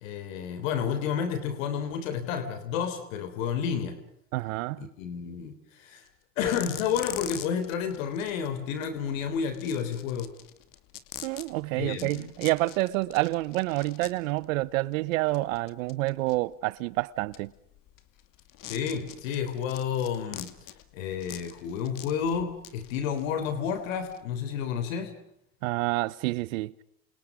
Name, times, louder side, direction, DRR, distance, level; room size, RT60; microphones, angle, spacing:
voice 1, 0.0-4.0 4.8-6.0 6.4-10.3 11.7-12.3 18.6-20.5 20.9-25.2, left 7 dB, 80° left, 3.7 m, -31 dB
voice 2, 4.3-4.9 11.2-17.5 25.6-26.7, right 19 dB, 80° right, 1.1 m, -28 dB
sound 1, 6.1-6.2 6.4-24.2, left 12 dB, 55° left, 2.6 m, -45 dB
29.0 x 27.5 x 5.1 m
supercardioid pair, 100°, 39 cm